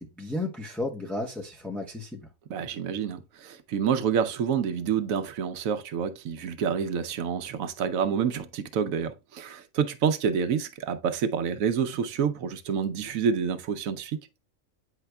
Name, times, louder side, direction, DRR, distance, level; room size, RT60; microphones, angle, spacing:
voice 1, 0.2-2.2, left 2 dB, ahead, 0.6 m, -33 dB
voice 2, 2.5-14.2, right 7 dB, 80° right, 1.1 m, -28 dB
9.1 x 4.8 x 2.2 m
omnidirectional pair, 1.4 m